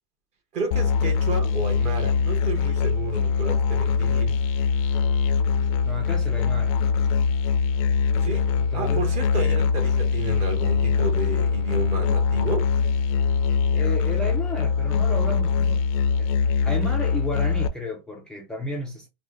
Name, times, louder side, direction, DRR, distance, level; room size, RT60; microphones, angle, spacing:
voice 1, 0.5-4.4 8.2-12.7, right 3 dB, 35° right, 1.3 m, -32 dB
Musical instrument, 0.7-17.7, left 5 dB, 55° left, 0.5 m, -22 dB
voice 2, 5.8-6.7 8.3-9.1 13.7-15.8 16.2-16.3 16.6-19.1, left 1 dB, 5° left, 0.5 m, -32 dB
3.4 x 2.2 x 3.0 m
supercardioid pair, 140°, 21 cm